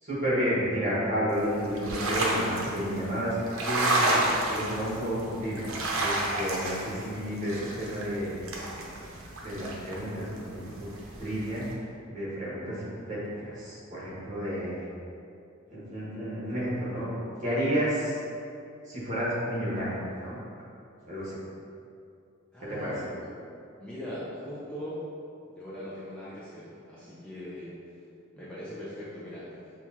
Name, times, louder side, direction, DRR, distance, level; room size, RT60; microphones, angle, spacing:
voice 1, 0.0-8.4 8.6-8.8 9.4-10.9 11.2-11.7 12.1-14.9 15.7-18.2 18.8-20.4 21.1-21.4 22.6-22.9, equal, 40° right, -8 dB, 1.3 m, -31 dB
sound 1, 1.4-11.7, right 1 dB, 90° right, 0.6 m, -31 dB
voice 2, 22.5-23.3 23.8-25.1 25.5-27.8 28.4-29.6, left 1 dB, 5° left, -10 dB, 0.5 m, -40 dB
6.1 x 2.4 x 2.8 m, 2.5 s
head